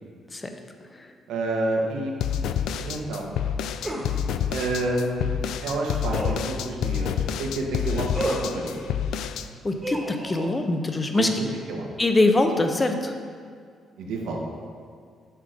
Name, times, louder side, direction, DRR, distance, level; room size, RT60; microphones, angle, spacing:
voice 1, 1.3-2.1 2.8-3.3 4.5-5.2 5.6-8.8 11.1-11.9 14.0-14.4, right 2 dB, 85° right, 0 dB, 1.3 m, -29 dB
sound 1, 2.2-9.5, left 8 dB, 80° left, 0.3 m, -28 dB
sound 2, 3.8-4.1 6.1-6.5 8.1-8.5 9.8-10.5, right 1 dB, 20° right, 1.4 m, -30 dB
voice 2, 9.6-11.3 12.0-13.2, left 2 dB, 20° left, 5 dB, 0.8 m, -23 dB
6.7 x 6.2 x 5.1 m, 2.1 s
cardioid pair, 90°, 0 cm